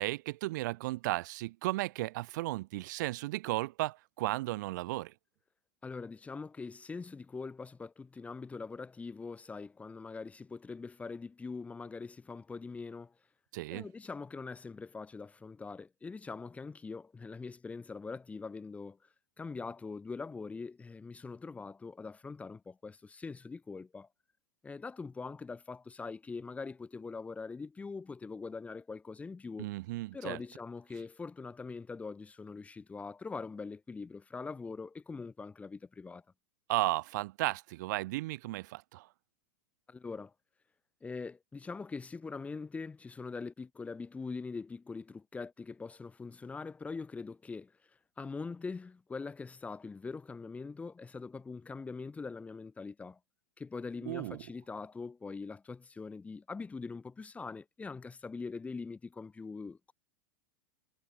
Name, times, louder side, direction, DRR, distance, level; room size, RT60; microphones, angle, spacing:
voice 1, 0.0-5.1 13.5-13.9 29.6-30.4 36.7-39.1 54.0-54.4, right 19 dB, 65° right, 1.5 m, -34 dB
voice 2, 5.8-13.1 13.7-19.0 19.4-24.1 24.6-29.7 30.1-36.2 39.9-40.3 41.0-47.7 48.2-53.2 53.6-59.9, left 4 dB, 15° left, 3.6 m, -43 dB
supercardioid pair, 130°, 11 cm